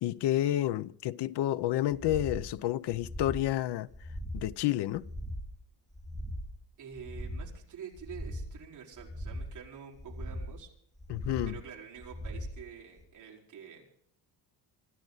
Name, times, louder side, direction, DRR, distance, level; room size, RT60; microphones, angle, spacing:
voice 1, 0.0-3.9 4.3-5.1 11.1-11.6, left 13 dB, 65° left, 0.7 m, -30 dB
sound 1, 1.9-2.5 2.9-3.5 3.9-4.5 4.9-5.5 5.9-6.5 6.9-7.5 7.9-8.5 8.9-9.5 9.9-10.5 11.0-11.5 12.0-12.6 13.0-13.1, equal, ahead, 0.8 m, -39 dB
voice 2, 6.8-10.7 11.4-13.8, right 7 dB, 45° right, 4.5 m, -47 dB
26.0 x 13.0 x 4.0 m
cardioid pair, 175°, 43 cm